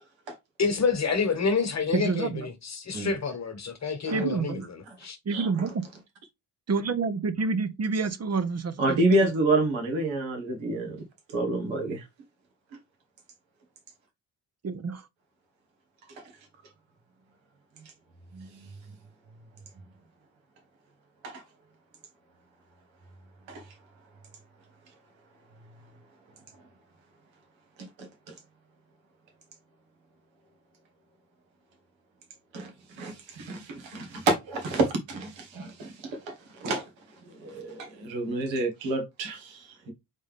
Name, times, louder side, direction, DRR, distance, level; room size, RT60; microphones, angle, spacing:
voice 1, 0.6-4.6 5.0-5.2, left 5 dB, 35° left, 1.4 m, -28 dB
voice 2, 1.9-2.5 4.1-4.6 5.3-5.8 6.7-9.3 14.6-15.1, right 4 dB, 35° right, 0.7 m, -28 dB
voice 3, 8.8-11.0 11.3-12.0 16.2-16.3 18.3-18.5 21.2-21.4 23.5-23.6 28.0-28.3 32.5-32.7 33.0-36.3 36.6-36.9 37.2-39.9, right 2 dB, 85° right, 1.7 m, -28 dB
4.1 x 3.6 x 3.6 m
supercardioid pair, 60°, 44 cm